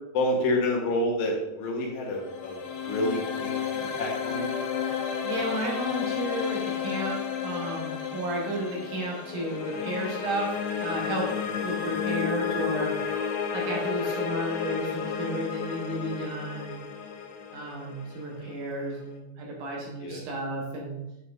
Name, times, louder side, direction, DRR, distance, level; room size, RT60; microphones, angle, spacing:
voice 1, 0.1-2.6 2.8-4.5 20.0-20.2, left 1 dB, 65° left, -1 dB, 2.0 m, -28 dB
sound 1, 1.9-19.0, left 7 dB, 80° left, 2.7 m, -32 dB
voice 2, 5.2-10.5 10.8-11.3 11.6-12.9 13.5-16.9 17.5-21.0, right 1 dB, 65° right, -2 dB, 2.3 m, -33 dB
7.4 x 5.6 x 2.5 m, 0.93 s
omnidirectional pair, 4.5 m